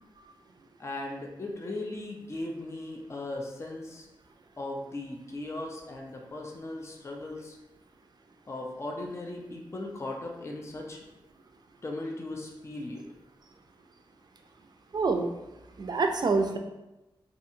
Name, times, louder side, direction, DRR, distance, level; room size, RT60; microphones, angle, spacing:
voice 1, 0.8-4.1 4.6-7.6 8.5-11.0 11.8-13.0, left 2 dB, 30° left, 0 dB, 0.4 m, -38 dB
voice 2, 14.9-15.3 15.8-16.6, right 4 dB, 50° right, 5 dB, 0.3 m, -26 dB
2.7 x 2.4 x 2.6 m, 0.98 s
cardioid pair, 70°, 9 cm